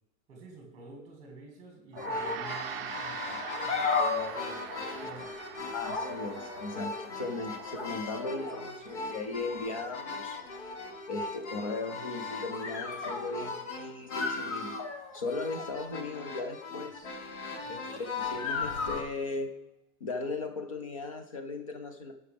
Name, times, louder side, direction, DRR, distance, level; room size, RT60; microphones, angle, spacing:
voice 1, 0.3-5.9 17.6-17.8, right 3 dB, 15° right, 1 dB, 2.0 m, -50 dB
Gong, 1.9-11.5, right 10 dB, 50° right, 0.5 m, -44 dB
sound 1, 2.0-19.0, left 4 dB, 55° left, 1.4 m, -36 dB
voice 2, 5.7-10.4 11.1-14.8 15.1-17.1 17.7-19.6 20.0-22.1, left 3 dB, 30° left, 7 dB, 0.3 m, -37 dB
17.0 x 5.9 x 3.4 m, 0.94 s
supercardioid pair, 180°, 41 cm